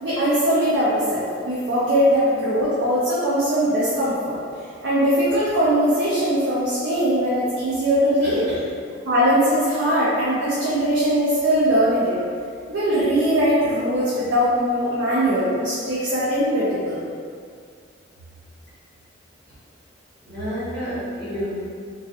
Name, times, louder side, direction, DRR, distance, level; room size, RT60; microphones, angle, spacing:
voice 1, 0.0-4.4 4.8-8.4 9.0-12.2 12.7-17.0, equal, 70° right, -9 dB, 0.4 m, -20 dB
voice 2, 8.2-8.6 20.2-21.5, equal, 50° right, -13 dB, 1.4 m, -30 dB
2.4 x 2.3 x 2.4 m, 2.3 s
head